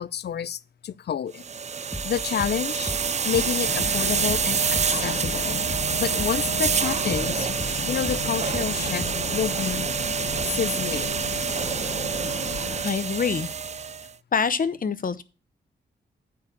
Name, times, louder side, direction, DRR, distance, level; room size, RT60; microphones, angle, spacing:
voice 1, 0.0-1.4 1.7-2.9 3.2-5.6 6.0-7.5 7.9-9.9 10.5-11.1, left 9 dB, 65° left, 0.5 m, -29 dB
Vacuum cleaner, 1.4-14.1, right 6 dB, 40° right, 0.4 m, -27 dB
sound 1, 1.9-6.9 7.1-9.4, equal, 10° right, 1.6 m, -36 dB
sound 2, 3.6-12.8, left 6 dB, 80° left, 1.3 m, -35 dB
voice 2, 12.8-13.5 14.3-15.2, left 6 dB, 50° left, 0.9 m, -25 dB
9.4 x 4.9 x 7.0 m
wide cardioid pair, 90°, 19 cm